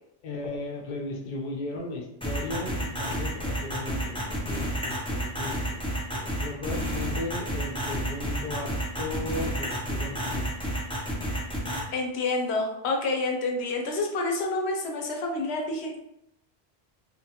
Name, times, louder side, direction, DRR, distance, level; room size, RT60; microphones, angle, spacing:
voice 1, 0.2-5.8 6.1-8.7 9.0-10.5, left 2 dB, 55° left, 1 dB, 0.6 m, -36 dB
sound 1, 2.2-11.8, equal, 10° left, 0.3 m, -30 dB
voice 2, 11.9-16.0, left 2 dB, 85° left, 2 dB, 0.8 m, -28 dB
2.7 x 2.2 x 2.7 m, 0.82 s
omnidirectional pair, 1.1 m